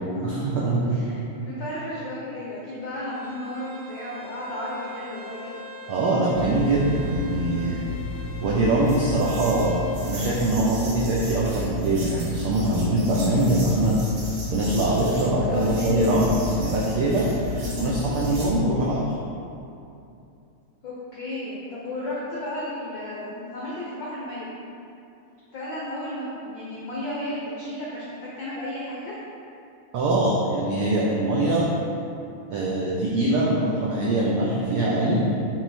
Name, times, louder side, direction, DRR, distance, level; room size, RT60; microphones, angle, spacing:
voice 1, 0.2-1.0 5.9-7.8 8.4-14.0 14.5-16.3 16.6-17.2 17.8-19.0 29.9-31.7 32.5-35.2, right 2 dB, 85° right, -5 dB, 1.2 m, -23 dB
voice 2, 0.9-5.6 15.5-16.2 17.4-17.7 20.8-24.5 25.5-29.1, left 1 dB, 80° left, -6 dB, 1.0 m, -33 dB
Bowed string instrument, 3.0-10.0, left 3 dB, 60° left, 0.6 m, -42 dB
sound 1, 6.3-18.5, left 3 dB, 65° right, 0.9 m, -32 dB
6.8 x 4.0 x 4.2 m, 2.6 s
omnidirectional pair, 3.3 m